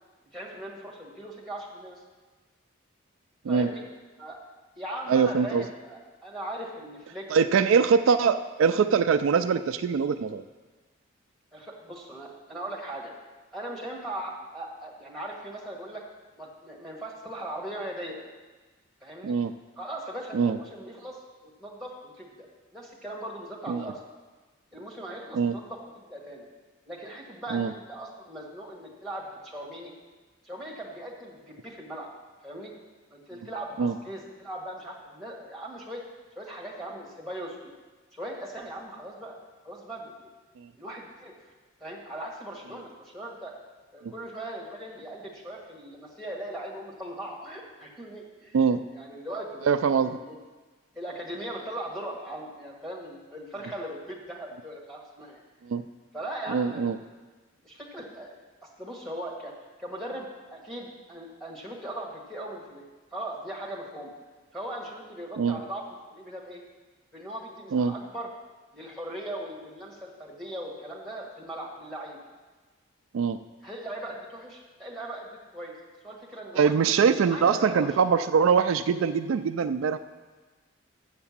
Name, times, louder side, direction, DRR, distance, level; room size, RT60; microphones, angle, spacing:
voice 1, 0.3-2.0 3.5-3.8 4.2-4.4 4.7-7.7 11.5-13.1 13.5-16.0 16.4-18.2 19.0-19.4 19.8-22.5 22.7-24.0 24.7-26.5 26.9-29.9 30.4-32.1 32.4-32.7 33.1-36.0 36.3-37.7 38.1-39.4 39.6-40.3 40.8-41.5 41.8-43.5 43.9-48.6 48.9-50.4 50.9-55.4 56.1-56.9 57.6-58.4 58.8-59.5 59.8-62.8 63.1-64.1 64.5-65.8 66.1-66.6 67.1-68.3 68.7-72.2 73.6-75.7 76.0-76.7 77.3-77.9, right 1 dB, ahead, -3 dB, 1.6 m, -39 dB
voice 2, 5.1-5.6 7.3-10.4 19.2-19.5 20.3-20.6 23.7-23.8 25.3-25.5 27.5-27.7 33.8-33.9 40.6-40.7 44.0-44.1 48.5-48.8 49.6-50.1 55.6-55.8 56.5-57.0 65.4-65.6 67.7-67.9 73.1-73.4 76.6-80.0, right 6 dB, 70° right, 10 dB, 0.3 m, -23 dB
7.3 x 6.9 x 7.2 m, 1.3 s
head